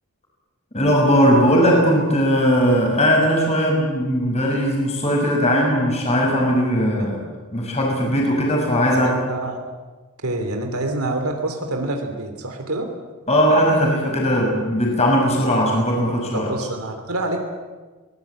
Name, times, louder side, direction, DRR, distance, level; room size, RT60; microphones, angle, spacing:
voice 1, 0.7-7.2 7.5-9.1 13.3-16.5, equal, 30° left, -1 dB, 6.2 m, -18 dB
voice 2, 8.9-9.6 10.2-12.9 16.3-17.4, right 2 dB, 80° right, 4 dB, 3.1 m, -26 dB
23.0 x 19.5 x 8.7 m, 1.3 s
head